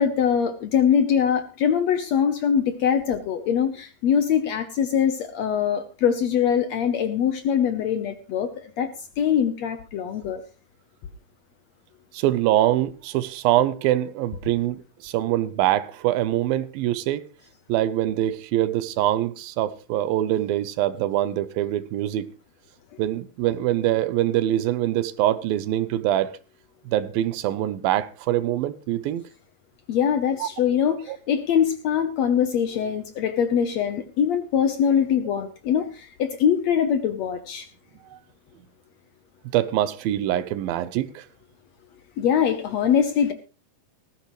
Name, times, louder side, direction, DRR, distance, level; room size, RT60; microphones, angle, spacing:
voice 1, 0.0-8.9 9.2-10.4 29.9-37.7 42.2-43.3, left 8 dB, 70° left, 1.7 m, -23 dB
voice 2, 12.1-17.3 17.7-22.3 23.0-26.4 26.9-29.3 30.4-30.5 31.1-31.2 38.1-38.2 39.5-41.3, right 13 dB, 90° right, 2.6 m, -24 dB
18.5 x 15.0 x 3.1 m
omnidirectional pair, 4.1 m